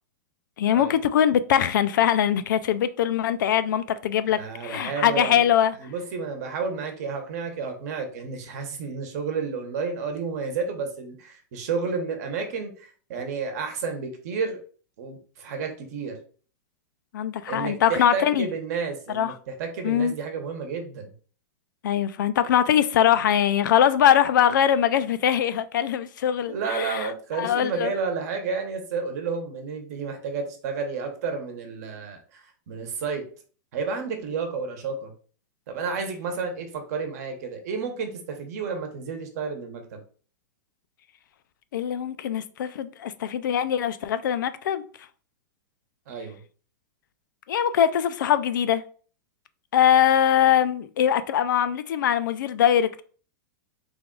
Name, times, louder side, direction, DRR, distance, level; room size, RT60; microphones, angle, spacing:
voice 1, 0.6-5.8 17.1-18.5 19.1-19.4 19.8-20.1 21.8-27.9 41.7-44.8 47.5-48.8 49.7-53.0, left 9 dB, 80° left, 0.4 m, -22 dB
voice 2, 4.4-5.4 5.8-14.6 15.0-16.2 17.5-21.1 26.5-33.2 33.7-35.1 35.7-40.0 46.1-46.4, right 5 dB, 55° right, 1.0 m, -31 dB
3.4 x 2.3 x 3.7 m
supercardioid pair, 155°, 10 cm